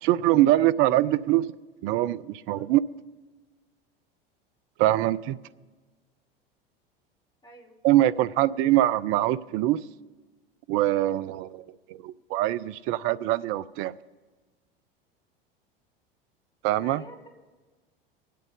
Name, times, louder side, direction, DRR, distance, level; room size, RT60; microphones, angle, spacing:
voice 1, 0.0-1.5 1.8-2.8 4.8-5.4 7.8-9.8 10.7-13.9 16.6-17.0, right 14 dB, 45° right, 17 dB, 0.5 m, -23 dB
voice 2, 2.3-2.7 7.4-7.8 8.4-8.5 16.8-17.3, left 1 dB, 15° left, -2 dB, 3.3 m, -49 dB
24.5 x 8.5 x 3.8 m, 1.3 s
hypercardioid pair, 80°, 29 cm